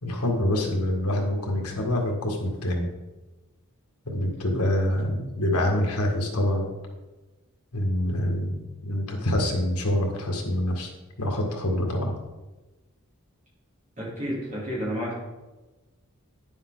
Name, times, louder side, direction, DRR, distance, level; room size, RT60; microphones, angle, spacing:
voice 1, 0.0-2.9 4.1-6.7 7.7-10.9 11.2-12.1, left 1 dB, 85° left, 2 dB, 1.8 m, -26 dB
voice 2, 14.0-15.2, equal, 35° right, -6 dB, 3.6 m, -31 dB
10.0 x 7.2 x 3.8 m, 1.1 s
head